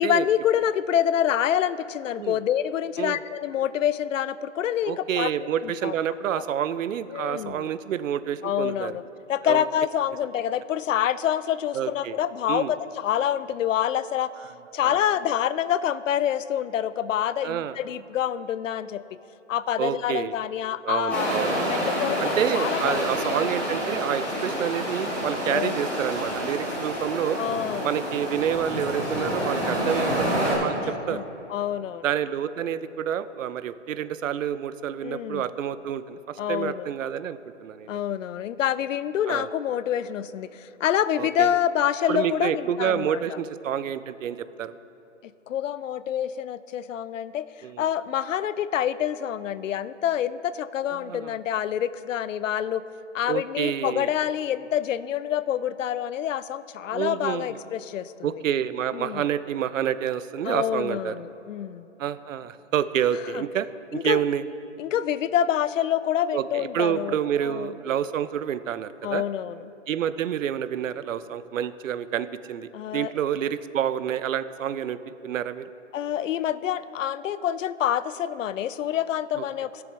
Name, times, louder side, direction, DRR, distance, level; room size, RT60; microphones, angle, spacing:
voice 1, 0.0-5.3 5.6-5.9 7.1-7.7 8.4-9.0 9.3-14.3 14.7-19.0 19.5-21.4 21.7-23.4 24.3-24.4 25.4-25.7 27.4-28.0 30.8-32.0 35.0-35.5 36.4-36.9 37.9-43.2 45.5-47.5 47.8-52.8 53.1-58.1 58.9-59.2 60.4-61.9 63.3-63.4 63.9-64.2 64.8-67.7 69.0-69.6 72.7-73.1 75.9-79.8, left 10 dB, 80° left, 16 dB, 0.5 m, -27 dB
voice 2, 4.9-8.9 9.4-9.6 11.7-12.2 12.5-12.7 14.8-15.0 17.4-17.8 19.8-20.3 20.8-21.6 22.2-27.4 27.8-30.8 31.1-31.2 32.0-38.0 39.3-39.5 41.2-41.6 42.1-44.7 47.6-47.9 51.0-51.4 53.3-54.1 56.9-57.6 58.2-61.2 62.0-64.4 66.3-69.2 69.9-75.7 79.4-79.5, right 9 dB, 85° right, 15 dB, 0.5 m, -28 dB
sound 1, 21.1-30.5, equal, 5° left, 1.5 m, -28 dB
17.0 x 6.9 x 3.3 m, 3.0 s
hypercardioid pair, 170°, 38 cm